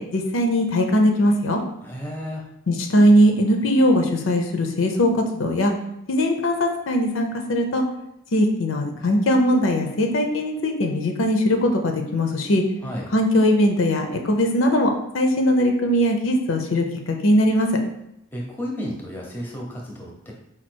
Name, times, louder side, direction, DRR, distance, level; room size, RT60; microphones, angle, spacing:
voice 1, 0.1-1.6 2.7-5.7 6.1-7.8 8.3-12.6 13.1-14.9 15.1-17.7, equal, 75° left, 4 dB, 0.6 m, -20 dB
voice 2, 1.8-2.5 12.8-13.1 18.3-20.3, equal, 10° left, -1 dB, 0.6 m, -32 dB
4.3 x 2.3 x 4.4 m, 0.80 s
head